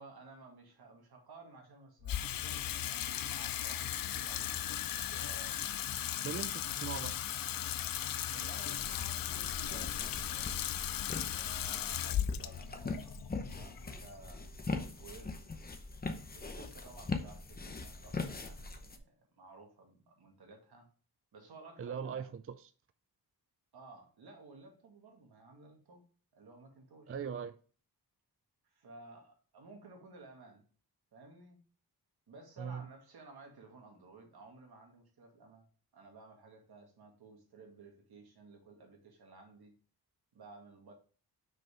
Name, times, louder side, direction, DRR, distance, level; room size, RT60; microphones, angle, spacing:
voice 1, 0.0-5.6 8.3-10.7 11.4-13.1 13.5-15.3 16.3-20.9 21.3-22.3 23.7-26.0 26.3-27.1 28.6-30.7 31.1-31.6 32.3-35.7 35.9-39.7 40.3-40.9, right 3 dB, 70° right, 2.2 m, -55 dB
Water tap faucet / Sink (filling or washing), 2.0-14.4, left 11 dB, 60° left, 0.5 m, -37 dB
voice 2, 6.2-7.2 21.8-22.7 27.1-27.5 32.6-32.9, right 7 dB, 35° right, 0.4 m, -40 dB
sound 1, 8.7-19.0, left 3 dB, 25° left, 0.8 m, -41 dB
6.2 x 5.3 x 5.0 m
wide cardioid pair, 145°, 39 cm